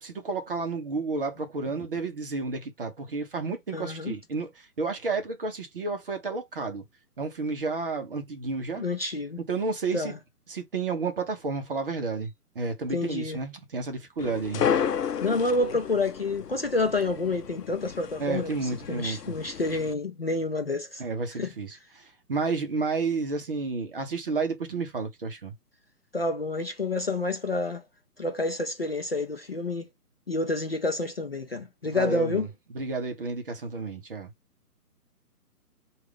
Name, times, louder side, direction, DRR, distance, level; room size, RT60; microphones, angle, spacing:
voice 1, 0.0-6.8 7.2-8.8 9.5-10.1 10.5-14.6 18.2-19.2 21.0-25.5 31.8-32.5 32.7-34.3, right 4 dB, 35° right, 0.8 m, -31 dB
voice 2, 3.7-4.2 8.8-9.4 9.9-10.2 12.9-13.4 15.2-21.0 21.4-21.5 26.1-27.8 28.2-29.9 30.3-32.5, left 2 dB, 40° left, 0.4 m, -28 dB
sound 1, 14.2-19.9, left 8 dB, 80° left, 0.6 m, -32 dB
4.7 x 2.4 x 3.6 m
hypercardioid pair, 155°, 47 cm